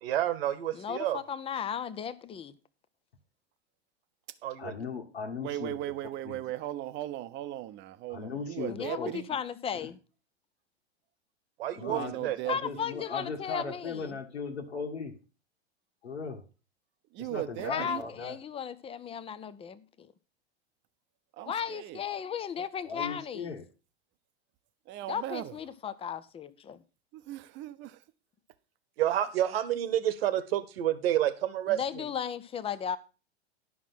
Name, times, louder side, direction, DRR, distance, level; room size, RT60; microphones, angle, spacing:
voice 1, 0.0-1.2 4.4-4.7 11.6-12.4 29.0-31.8, right 12 dB, 60° right, 1.4 m, -29 dB
voice 2, 0.7-2.5 8.7-10.0 12.5-14.2 17.6-20.1 21.5-23.6 25.1-26.8 31.7-33.0, left 8 dB, 15° left, 0.7 m, -35 dB
voice 3, 4.6-5.8 6.0-6.4 8.1-9.1 9.7-9.9 11.8-15.1 16.0-16.4 17.2-18.4 22.8-23.6, left 4 dB, 80° left, 1.8 m, -38 dB
voice 4, 5.4-9.3 11.8-12.8 17.1-18.0 21.3-22.0 24.9-25.6 27.1-28.0, right 14 dB, 35° right, 0.9 m, -37 dB
11.0 x 6.1 x 5.8 m
figure-of-eight pair, 95°, 33 cm